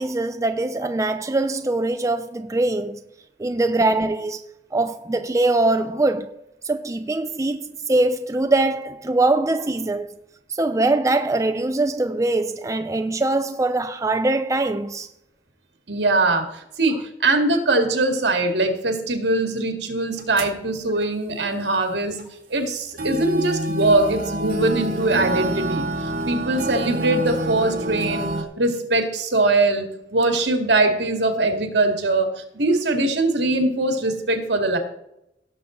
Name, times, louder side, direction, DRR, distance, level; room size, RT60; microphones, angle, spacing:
voice 1, 0.0-3.0 3.4-4.4 4.7-6.4 6.6-10.1 10.5-15.1, right 2 dB, 20° right, 0.4 m, -22 dB
voice 2, 15.9-22.2 22.5-34.8, right 2 dB, 70° right, 2.1 m, -22 dB
sound 1, 20.2-20.6 21.0-21.1 22.2-22.3 23.0-28.4, right 1 dB, 55° right, 1.9 m, -27 dB
17.5 x 7.0 x 3.9 m
head